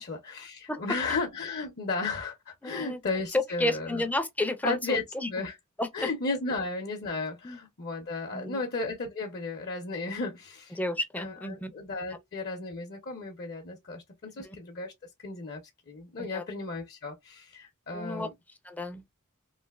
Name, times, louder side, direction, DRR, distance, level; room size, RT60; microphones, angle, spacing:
voice 1, 0.0-4.0 4.6-5.0 5.3-5.6 5.9-10.8 11.2-14.9 15.2-18.3, left 3 dB, 45° left, 0.7 m, -34 dB
voice 2, 2.6-3.0 3.3-5.3 5.8-6.1 7.4-7.6 8.3-8.6 10.8-11.7 14.4-14.6 16.3-16.4 17.9-18.3 18.6-19.0, left 1 dB, 5° left, 0.4 m, -31 dB
3.2 x 2.5 x 2.3 m
head